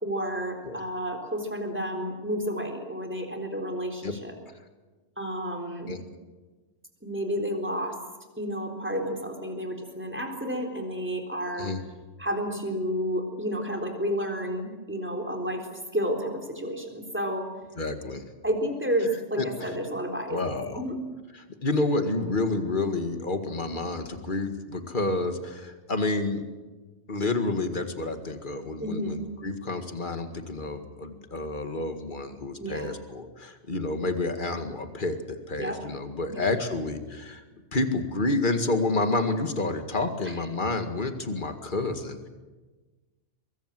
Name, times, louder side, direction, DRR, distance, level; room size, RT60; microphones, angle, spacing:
voice 1, 0.0-4.3 5.2-5.9 7.0-7.9 8.4-11.7 12.2-15.7 15.9-17.5 18.4-20.4 20.8-20.9 28.8-29.2 32.6-32.9 35.6-35.8 36.3-36.5 40.3-40.5, equal, 10° right, 2 dB, 3.8 m, -31 dB
voice 2, 17.8-18.2 19.4-19.7 20.3-20.8 21.4-26.5 27.1-37.4 37.7-42.3, left 2 dB, 45° left, 7 dB, 2.2 m, -29 dB
23.5 x 23.0 x 7.7 m, 1.2 s
omnidirectional pair, 1.2 m